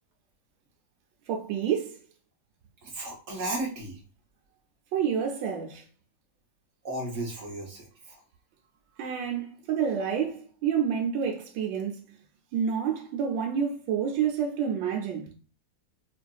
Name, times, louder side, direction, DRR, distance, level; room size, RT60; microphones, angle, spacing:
voice 1, 1.3-2.0 4.9-5.8 9.0-12.0 12.5-15.3, right 7 dB, 80° right, 1.3 m, -28 dB
voice 2, 2.8-4.0 6.8-8.2, right 2 dB, 55° right, 1.0 m, -34 dB
4.4 x 2.5 x 2.3 m
omnidirectional pair, 2.0 m